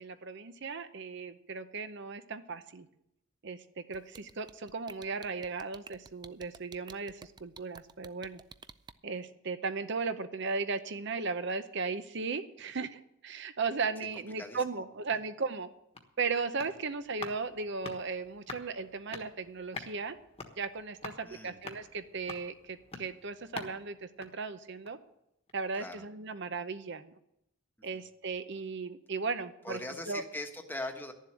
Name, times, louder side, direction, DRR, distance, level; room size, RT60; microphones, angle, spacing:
voice 1, 0.0-2.9 3.4-8.4 9.0-15.7 16.2-20.2 20.6-25.0 25.5-27.0 27.8-29.8 30.1-30.2, right 4 dB, 55° right, 10 dB, 0.7 m, -36 dB
sound 1, 3.9-8.9, right 5 dB, 20° right, 0.4 m, -50 dB
sound 2, 15.7-25.1 25.5-25.6, left 4 dB, 30° left, 1.3 m, -48 dB
voice 2, 21.2-21.6 25.7-26.0 27.8-28.0 29.6-31.1, left 1 dB, 10° left, 5 dB, 1.2 m, -41 dB
11.5 x 7.4 x 9.8 m, 0.82 s
head